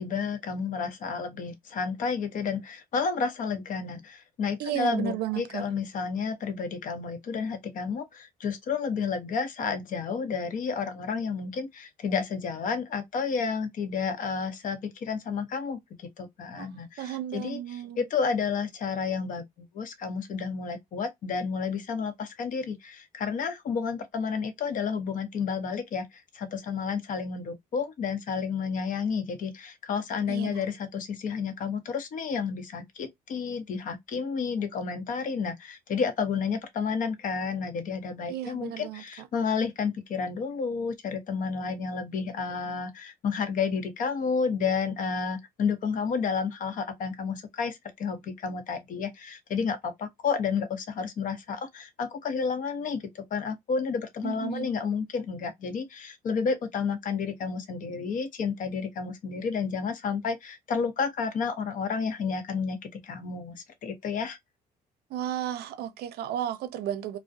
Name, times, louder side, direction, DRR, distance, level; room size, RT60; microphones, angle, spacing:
voice 1, 0.0-64.4, left 5 dB, 50° left, 0.7 m, -31 dB
voice 2, 4.6-5.6 16.6-16.7 17.0-18.1 30.3-30.6 38.3-39.3 54.2-54.7 65.1-67.2, right 11 dB, 70° right, 0.5 m, -33 dB
2.3 x 2.1 x 2.6 m
cardioid pair, 110°, 17 cm